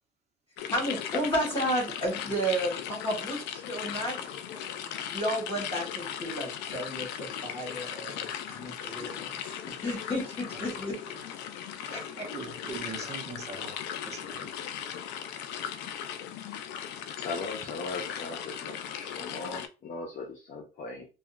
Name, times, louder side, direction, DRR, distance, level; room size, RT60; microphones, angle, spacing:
sound 1, 0.6-19.7, left 9 dB, 90° left, 0.4 m, -38 dB
voice 1, 0.7-11.0 11.9-12.3, equal, 30° left, 1.4 m, -33 dB
voice 2, 12.3-14.6, right 4 dB, 40° right, 1.0 m, -42 dB
voice 3, 17.2-21.1, left 3 dB, 50° left, 0.7 m, -38 dB
2.7 x 2.3 x 2.4 m
cardioid pair, 110°, 17 cm